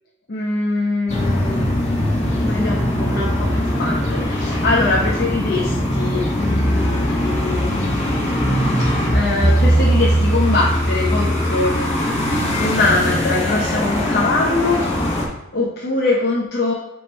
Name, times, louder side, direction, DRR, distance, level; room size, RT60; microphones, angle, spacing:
voice 1, 0.3-1.8 2.3-7.8 9.1-11.9 12.3-14.8 15.5-16.7, left 3 dB, 55° left, -3 dB, 0.9 m, -22 dB
sound 1, 1.1-15.3, equal, 35° left, 1.5 m, -20 dB
6.9 x 3.7 x 4.4 m, 0.96 s
head